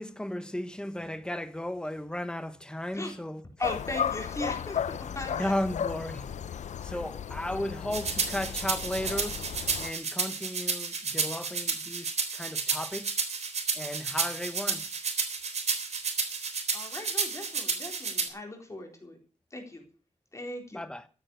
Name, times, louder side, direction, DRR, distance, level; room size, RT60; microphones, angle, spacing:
voice 1, 0.0-3.4 5.3-6.4 6.8-13.2 13.7-14.9 20.7-21.1, left 1 dB, 5° left, 1.2 m, -35 dB
sound 1, 3.6-9.9, left 8 dB, 90° left, 0.6 m, -35 dB
voice 2, 3.6-5.5 16.7-19.2 19.5-19.8 20.3-20.8, left 2 dB, 25° left, 4.1 m, -38 dB
sound 2, 7.9-18.3, right 5 dB, 70° right, 3.7 m, -31 dB
14.5 x 9.6 x 6.6 m
wide cardioid pair, 155°, 12 cm